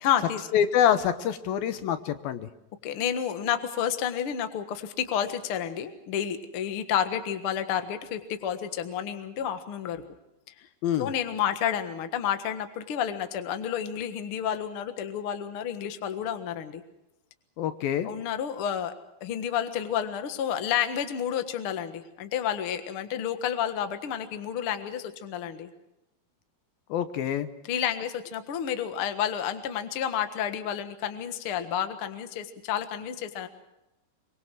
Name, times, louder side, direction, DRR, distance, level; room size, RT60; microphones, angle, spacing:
voice 1, 0.0-0.4 2.8-10.0 10.6-10.7 11.0-16.8 18.0-18.9 19.2-25.7 27.6-33.5, left 9 dB, 50° left, 8 dB, 1.8 m, -30 dB
voice 2, 0.5-2.5 10.8-11.1 17.6-18.1 26.9-27.5, left 9 dB, 75° left, 11 dB, 2.8 m, -26 dB
24.0 x 22.5 x 6.2 m, 0.92 s
omnidirectional pair, 4.3 m